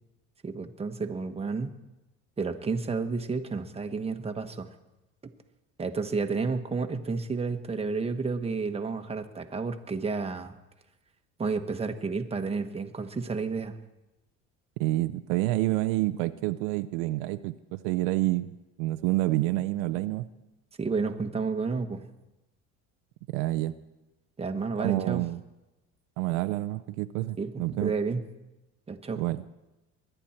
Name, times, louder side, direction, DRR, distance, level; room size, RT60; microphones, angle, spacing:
voice 1, 0.4-1.7 2.4-4.7 5.8-10.5 11.4-13.8 20.8-22.1 24.4-25.3 27.4-28.2 28.9-29.3, right 4 dB, 20° right, 6 dB, 1.3 m, -31 dB
voice 2, 14.8-18.5 18.8-20.3 23.3-23.7 24.8-25.4 26.2-27.9 29.2-29.5, right 17 dB, 90° right, 12 dB, 0.6 m, -28 dB
23.0 x 10.0 x 4.4 m, 1.0 s
supercardioid pair, 105°, 30 cm